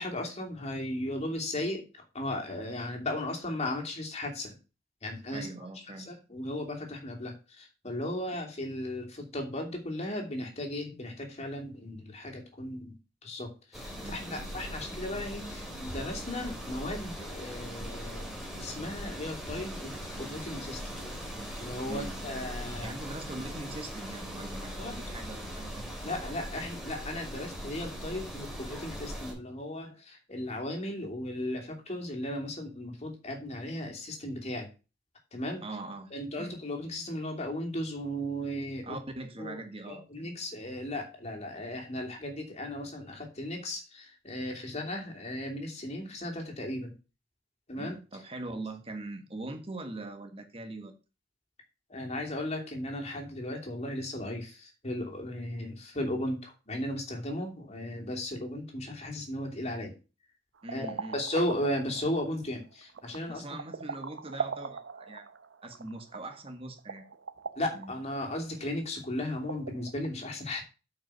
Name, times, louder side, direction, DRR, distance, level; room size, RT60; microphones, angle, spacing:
voice 1, 0.0-1.8 2.1-4.6 5.0-5.5 6.0-13.0 13.2-20.8 21.6-22.9 24.8-25.1 26.0-34.7 35.3-35.6 36.1-39.0 39.4-46.9 47.7-48.0 51.9-59.9 60.7-63.6 67.6-70.6, left 1 dB, 35° left, 1 dB, 2.8 m, -36 dB
voice 2, 5.3-6.1 14.0-14.4 21.9-22.2 22.8-25.8 35.6-36.1 36.4-36.5 38.8-40.3 47.8-50.9 60.6-61.2 63.3-65.3 65.6-67.0 67.7-67.9, right 2 dB, 30° right, 6 dB, 1.5 m, -42 dB
sound 1, 13.7-29.3, equal, ahead, 3.4 m, -40 dB
sound 2, 60.6-70.1, right 5 dB, 90° right, 0.7 m, -41 dB
8.9 x 5.4 x 6.2 m, 0.31 s
head